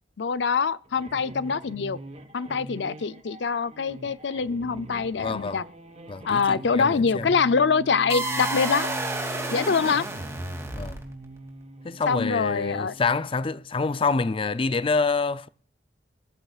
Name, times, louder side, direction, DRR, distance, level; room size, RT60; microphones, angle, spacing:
voice 1, 0.2-2.0 2.3-5.6 6.2-8.9 9.5-10.1 12.1-12.9, left 5 dB, 75° left, 0.5 m, -24 dB
sound 1, 0.9-13.3, right 1 dB, 40° right, 1.2 m, -42 dB
voice 2, 5.2-5.6 6.1-7.3 10.7-11.0 11.8-15.5, left 4 dB, 30° left, 0.5 m, -27 dB
sound 2, 8.1-11.2, right 2 dB, 15° right, 2.6 m, -30 dB
19.5 x 13.5 x 2.4 m
head